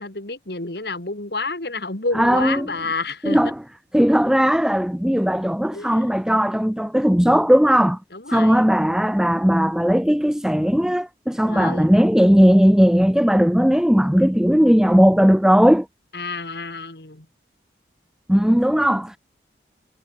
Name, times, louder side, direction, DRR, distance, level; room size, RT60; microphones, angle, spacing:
voice 1, 0.0-3.4 5.7-6.1 8.1-8.6 11.5-11.9 16.1-17.3, left 3 dB, 70° left, 2.6 m, -29 dB
voice 2, 2.1-2.7 3.2-3.6 3.9-8.0 8.3-15.9 18.3-19.2, equal, 5° right, 0.5 m, -17 dB
head